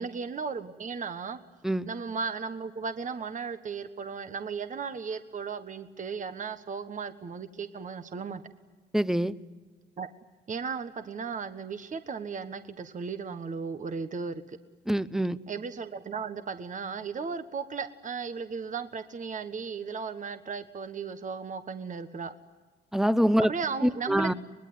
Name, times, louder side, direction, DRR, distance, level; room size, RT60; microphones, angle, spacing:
voice 1, 0.0-1.4 1.9-8.4 10.0-10.1 10.5-14.6 15.5-22.3 23.4-24.3, right 5 dB, 40° right, 9 dB, 1.3 m, -35 dB
voice 2, 8.9-9.4 14.9-15.4 22.9-23.5 23.8-24.3, equal, ahead, 15 dB, 0.8 m, -25 dB
24.5 x 20.5 x 9.5 m, 1.4 s
cardioid pair, 90°, 20 cm